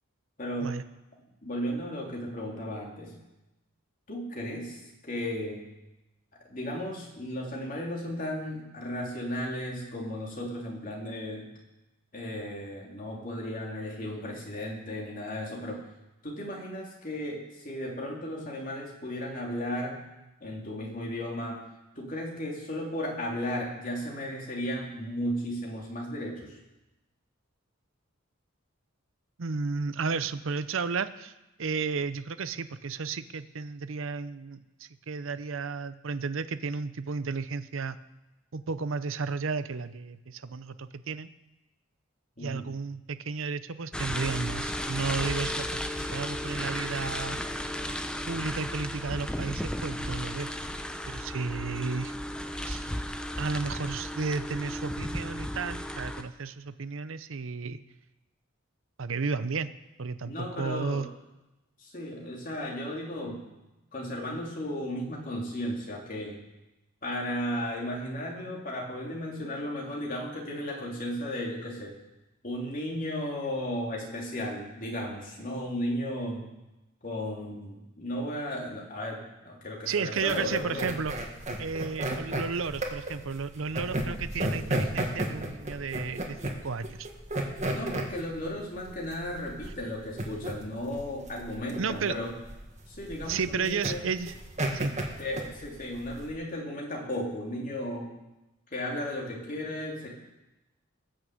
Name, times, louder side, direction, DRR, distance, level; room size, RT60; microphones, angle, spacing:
voice 1, 0.4-0.8 1.4-3.1 4.1-5.6 6.4-11.5 12.1-15.8 16.2-20.0 20.4-21.7 22.0-26.6 42.4-42.7 46.0-46.2 60.2-61.1 61.8-63.4 63.9-66.4 67.0-72.0 72.4-76.5 77.0-80.9 87.7-92.3 92.9-94.0 95.2-98.2 98.7-100.1, left 1 dB, 40° left, -1 dB, 3.0 m, -35 dB
voice 2, 29.4-31.3 31.6-38.0 38.5-41.3 42.4-45.8 46.1-47.4 48.3-50.5 51.1-52.1 52.6-52.9 53.4-57.8 59.0-59.7 60.0-61.1 79.9-81.1 81.6-87.1 91.8-92.2 93.3-94.3 94.7-94.9, right 5 dB, 80° right, 14 dB, 0.7 m, -33 dB
sound 1, 43.9-56.2, left 1 dB, 5° left, 0.6 m, -34 dB
sound 2, 80.2-96.3, right 1 dB, 35° right, 1.7 m, -33 dB
19.0 x 6.4 x 7.8 m, 1.0 s
head